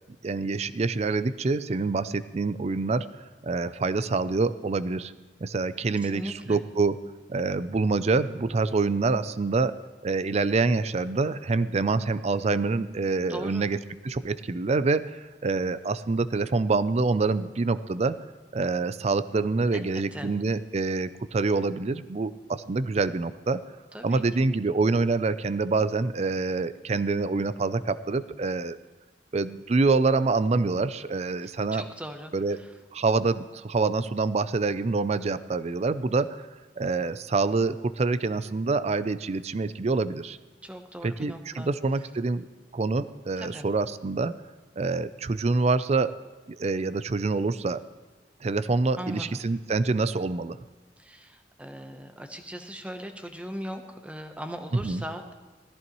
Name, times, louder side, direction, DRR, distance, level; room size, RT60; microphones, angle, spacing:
voice 1, 0.2-3.1 3.4-5.1 5.4-7.0 7.3-9.8 10.0-13.8 14.0-18.2 18.5-23.6 24.0-28.8 29.3-31.8 32.3-32.6 32.9-36.5 36.8-40.4 41.0-42.5 42.7-44.3 44.8-46.1 46.5-47.8 48.4-50.6 54.8-55.0, right 3 dB, 35° right, 14 dB, 0.4 m, -26 dB
voice 2, 6.0-6.6 13.3-13.7 19.7-20.3 23.9-24.2 31.4-32.7 40.6-41.7 43.4-43.6 49.0-49.4 51.0-55.3, equal, 10° right, 6 dB, 0.9 m, -39 dB
17.5 x 14.0 x 3.1 m, 1.3 s
head